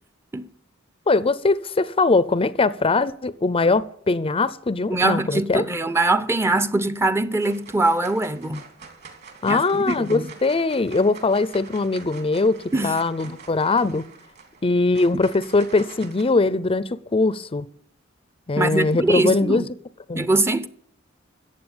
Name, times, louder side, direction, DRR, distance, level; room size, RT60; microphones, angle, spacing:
voice 1, 1.1-5.6 9.4-14.0 14.6-17.7 18.5-19.6 20.1-20.3, left 3 dB, 25° left, 0.5 m, -21 dB
voice 2, 4.9-8.6 9.5-10.3 12.7-13.0 18.6-19.7 20.2-20.7, right 2 dB, 15° right, 0.6 m, -22 dB
sound 1, 6.8-7.1 7.4-16.2, right 5 dB, 55° right, 2.9 m, -45 dB
14.5 x 8.3 x 8.8 m
head